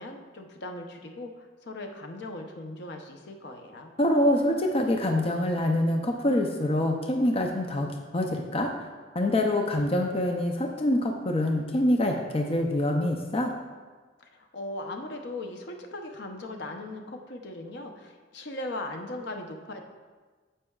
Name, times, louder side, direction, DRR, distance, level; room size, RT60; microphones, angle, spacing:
voice 1, 0.0-3.9 14.2-19.8, left 2 dB, 65° left, 4 dB, 0.7 m, -39 dB
voice 2, 4.0-8.7 9.1-13.5, left 1 dB, 30° left, 2 dB, 0.5 m, -25 dB
9.8 x 7.5 x 2.4 m, 1.4 s
head